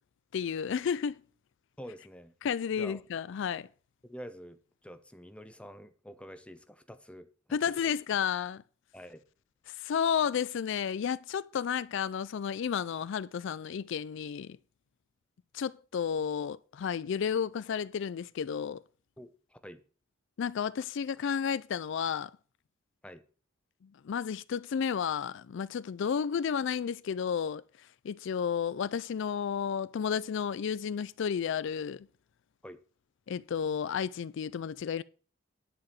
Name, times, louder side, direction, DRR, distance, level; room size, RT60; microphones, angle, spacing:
voice 1, 0.3-1.2 2.4-3.7 7.5-8.6 9.7-14.6 15.5-18.8 20.4-22.3 24.0-27.6 28.0-32.1 33.3-35.0, left 7 dB, 65° left, 0.4 m, -32 dB
voice 2, 1.8-2.3 2.7-3.0 4.0-4.6 4.8-7.3 8.9-9.2 19.2-19.8 23.0-23.2 32.6-32.8, equal, 5° left, 0.8 m, -47 dB
10.5 x 4.9 x 7.6 m
head